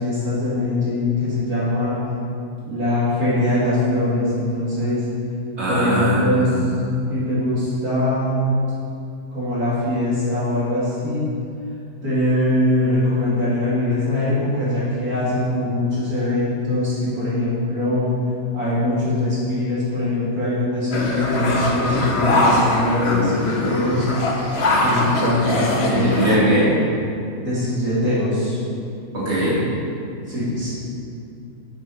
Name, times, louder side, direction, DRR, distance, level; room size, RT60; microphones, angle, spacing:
voice 1, 0.0-2.0 2.6-5.0 5.7-6.8 7.1-8.5 9.3-11.3 12.0-18.1 18.5-24.1 24.8-26.1 27.4-28.6 30.3-30.7, left 1 dB, 80° right, -9 dB, 3.1 m, -22 dB
voice 2, 5.6-6.5 25.5-25.6 25.9-26.8 29.1-29.6, right 1 dB, 50° right, -9 dB, 2.9 m, -20 dB
sound 1, 20.9-26.4, left 1 dB, 50° left, 1.2 m, -21 dB
8.2 x 7.4 x 5.7 m, 2.6 s
omnidirectional pair, 1.5 m